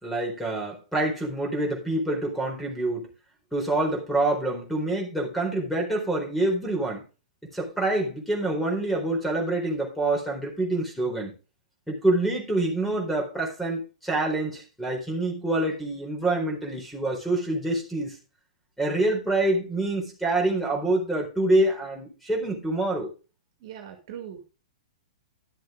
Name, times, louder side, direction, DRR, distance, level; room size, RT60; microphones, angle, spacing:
voice 1, 0.0-3.1 3.5-7.0 7.5-11.3 11.9-18.2 18.8-23.1, right 2 dB, 5° left, 1 dB, 4.2 m, -26 dB
voice 2, 23.6-24.4, right 9 dB, 50° right, 5 dB, 2.2 m, -40 dB
12.0 x 7.5 x 3.8 m, 0.32 s
figure-of-eight pair, 110°, 4 cm